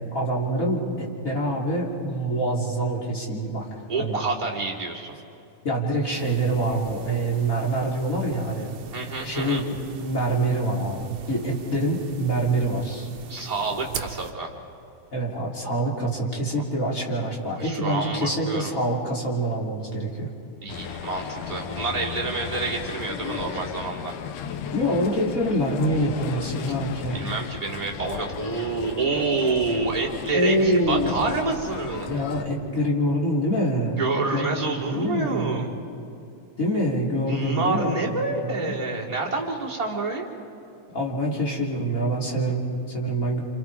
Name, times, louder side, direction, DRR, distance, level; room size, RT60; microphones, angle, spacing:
voice 1, 0.1-3.7 4.0-4.2 5.6-8.7 9.2-13.1 15.1-20.3 24.7-27.2 30.3-31.2 32.1-34.0 34.3-35.6 36.6-37.9 38.4-38.8 40.9-43.4, right 1 dB, 25° left, -3 dB, 3.3 m, -25 dB
voice 2, 3.9-5.2 8.9-9.6 13.3-14.5 17.5-18.7 20.6-24.2 27.1-32.1 34.0-35.7 37.3-40.3, right 3 dB, 10° right, -5 dB, 3.3 m, -28 dB
sound 1, 6.1-14.3, right 7 dB, 60° right, 1.9 m, -41 dB
sound 2, 20.7-32.4, left 7 dB, 85° left, 2.4 m, -35 dB
29.5 x 27.5 x 4.8 m, 2.8 s
omnidirectional pair, 3.5 m